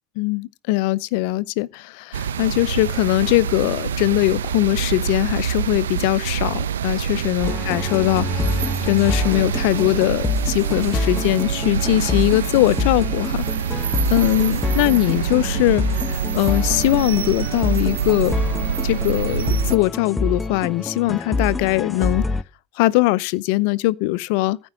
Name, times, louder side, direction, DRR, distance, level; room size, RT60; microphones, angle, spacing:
voice 1, 0.2-13.5 13.8-18.4 18.8-22.3 22.8-24.6, left 18 dB, 70° left, 0.6 m, -21 dB
sound 1, 2.1-19.8, right 8 dB, 85° right, 0.7 m, -26 dB
sound 2, 7.4-22.4, left 2 dB, 20° left, 0.8 m, -26 dB
14.5 x 5.3 x 7.6 m
hypercardioid pair, 80°, 0 cm